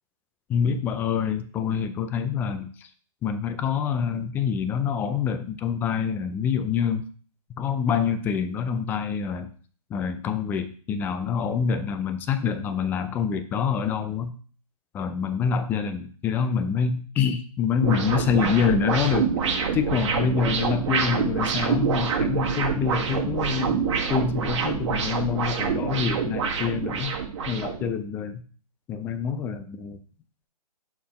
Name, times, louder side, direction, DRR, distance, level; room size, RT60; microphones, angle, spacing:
voice 1, 0.5-2.9 3.2-7.1 7.6-9.5 9.9-14.3 14.9-19.3 19.7-23.8 24.1-27.2 27.5-28.4 28.9-30.0, left 7 dB, 10° left, 9 dB, 0.3 m, -26 dB
sound 1, 17.8-27.9, right 6 dB, 50° right, 1.4 m, -26 dB
6.7 x 3.8 x 4.2 m, 0.43 s
hypercardioid pair, 135°, 20 cm